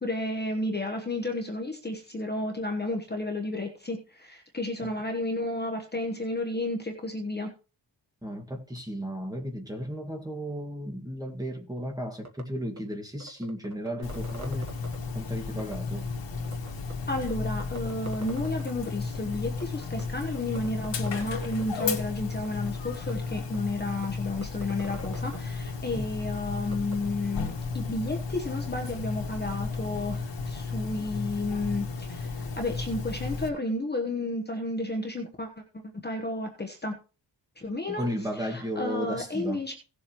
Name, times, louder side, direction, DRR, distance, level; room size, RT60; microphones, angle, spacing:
voice 1, 0.0-7.5 17.1-35.6 36.0-37.0 37.6-38.1 38.4-39.7, left 2 dB, 25° left, 3 dB, 1.1 m, -32 dB
voice 2, 8.2-14.9 15.1-16.1 26.0-26.1 37.9-39.6, equal, 10° right, 1 dB, 1.9 m, -34 dB
sound 1, 12.2-12.4 12.8-12.9 13.2-15.0 15.6-15.7 16.4-16.9 17.3-17.4 17.6-18.9 19.1-19.2 19.4-19.6 20.0-20.1 20.3-21.6 22.4-22.5 23.1-23.2 23.5-23.6 24.0-24.1 24.4-25.4 26.7-26.9, right 2 dB, 40° right, 1.4 m, -42 dB
Dog, 14.0-33.5, left 4 dB, 85° left, 1.9 m, -34 dB
17.5 x 7.2 x 3.1 m, 0.35 s
wide cardioid pair, 160°, 43 cm